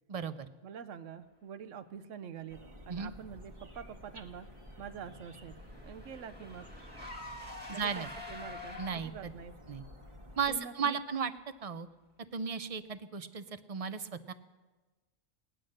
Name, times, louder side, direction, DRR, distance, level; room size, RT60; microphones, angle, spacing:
voice 1, 0.1-0.5 2.9-3.1 7.7-8.1 8.8-9.3 9.7-9.8 10.4-11.3 11.6-11.9 12.3-14.3, right 6 dB, 40° right, 12 dB, 0.5 m, -35 dB
voice 2, 0.6-4.5 4.8-5.6 5.8-6.7 7.7-9.5 10.5-11.0, right 7 dB, 80° right, 11 dB, 1.1 m, -46 dB
sound 1, 2.5-10.6, left 1 dB, 25° right, 1.2 m, -52 dB
Car / Engine, 4.3-9.3, left 2 dB, 10° right, 1.3 m, -47 dB
18.5 x 10.0 x 6.5 m, 1.2 s
omnidirectional pair, 1.3 m